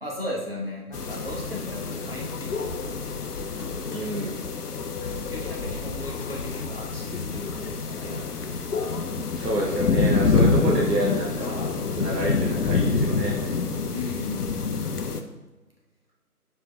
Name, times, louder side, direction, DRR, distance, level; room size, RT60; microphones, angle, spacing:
voice 1, 0.0-3.2 3.4-4.7 5.3-7.7 8.0-8.5 13.9-14.5, left 1 dB, 40° right, -4 dB, 0.7 m, -37 dB
sound 1, 0.9-15.2, left 4 dB, 70° left, 0.5 m, -27 dB
voice 2, 3.9-4.4 9.3-13.4, right 1 dB, 85° right, -2 dB, 0.8 m, -28 dB
4.6 x 4.4 x 2.2 m, 1.2 s
figure-of-eight pair, 165°, 47 cm